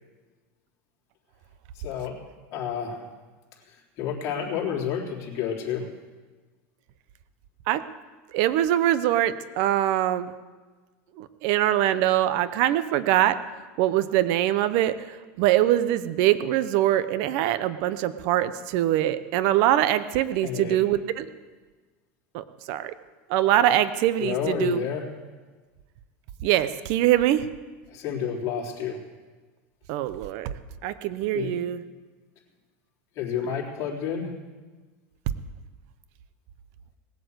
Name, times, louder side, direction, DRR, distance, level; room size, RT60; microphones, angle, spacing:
voice 1, 1.8-2.2 2.5-3.1 3.7-5.9 20.4-20.8 24.2-25.1 27.9-29.0 31.3-31.6 33.2-34.3, left 7 dB, 45° left, -2 dB, 3.6 m, -30 dB
voice 2, 8.3-10.3 11.2-13.4 13.8-14.9 15.4-21.3 22.3-22.9 23.3-24.8 26.4-27.5 29.9-30.5 30.8-31.8, right 13 dB, 60° right, 13 dB, 0.8 m, -23 dB
19.0 x 8.1 x 8.1 m, 1.3 s
supercardioid pair, 130°, 7 cm